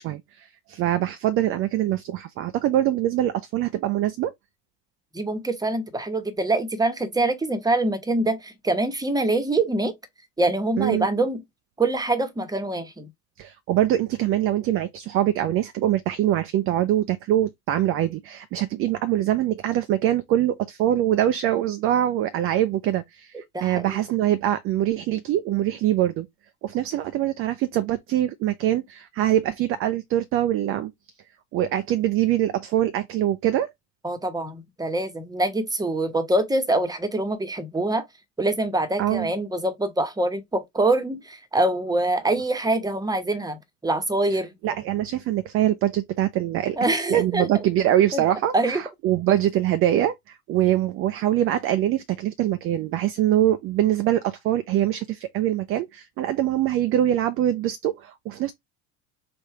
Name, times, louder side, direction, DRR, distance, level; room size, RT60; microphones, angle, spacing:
voice 1, 0.0-4.3 10.8-11.1 13.4-23.3 23.6-26.3 26.6-30.9 31.5-33.7 39.0-39.3 44.6-46.8 47.1-58.5, right 12 dB, 30° right, 0.4 m, -23 dB
voice 2, 5.1-9.9 10.4-11.4 11.8-13.1 23.5-24.0 34.0-38.0 38.4-44.5 46.8-47.5 48.1-48.2 48.5-48.8, right 2 dB, 10° right, 1.0 m, -24 dB
3.4 x 2.5 x 4.4 m
hypercardioid pair, 75°, 49 cm